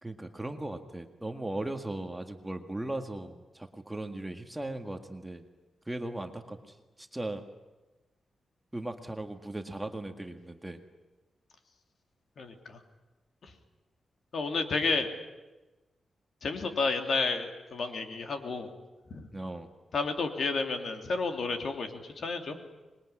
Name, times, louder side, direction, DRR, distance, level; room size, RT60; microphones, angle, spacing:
voice 1, 0.0-5.5 5.9-7.4 8.7-10.8 19.3-19.7, right 1 dB, 10° right, 6 dB, 1.8 m, -38 dB
voice 2, 12.4-12.8 13.4-13.5 14.3-15.1 16.4-18.7 19.1-19.3 19.9-22.6, left 4 dB, 60° left, 5 dB, 3.0 m, -31 dB
26.0 x 21.5 x 9.9 m, 1.1 s
wide cardioid pair, 140°, 0 cm